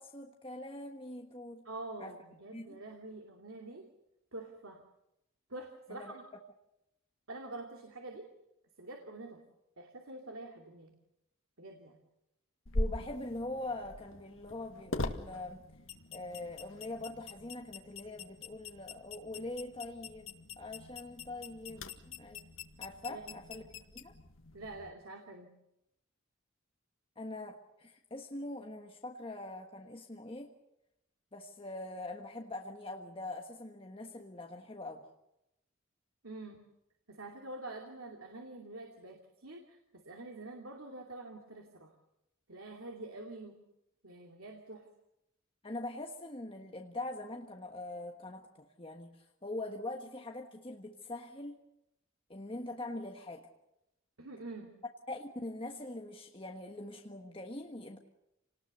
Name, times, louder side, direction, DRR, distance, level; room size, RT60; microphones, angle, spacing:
voice 1, 0.0-1.7 2.0-2.1 2.5-2.8 5.9-6.4 12.7-15.6 16.1-22.4 22.8-23.6 23.9-24.1 27.2-30.5 31.3-35.0 45.6-51.6 52.3-53.5 55.1-58.0, left 2 dB, 25° left, 2 dB, 1.4 m, -43 dB
voice 2, 1.6-3.9 4.3-4.8 5.5-6.2 7.3-8.3 8.8-9.4 9.8-10.9 11.6-12.0 23.1-23.4 24.5-25.5 36.2-36.6 37.1-41.9 42.5-43.6 44.0-44.9 54.2-54.7, right 2 dB, 85° right, 2 dB, 2.7 m, -46 dB
sound 1, 12.7-24.9, left 2 dB, 70° left, 1.8 m, -42 dB
28.0 x 19.5 x 6.8 m, 0.86 s
head